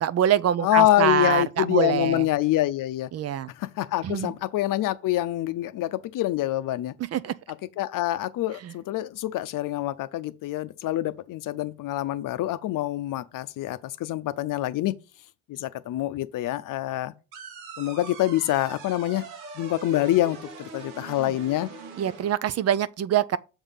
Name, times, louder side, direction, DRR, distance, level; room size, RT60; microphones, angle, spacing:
voice 1, 0.0-2.2 3.1-3.5 4.0-4.3 7.1-7.3 22.0-23.4, right 10 dB, 40° right, 0.5 m, -24 dB
voice 2, 0.6-3.1 3.6-6.9 7.5-14.9 15.5-17.1 17.8-19.3 19.5-21.7, left 14 dB, 55° left, 0.7 m, -26 dB
sound 1, 17.3-22.3, right 5 dB, 75° right, 1.5 m, -41 dB
7.1 x 3.5 x 5.7 m
hypercardioid pair, 60°, 38 cm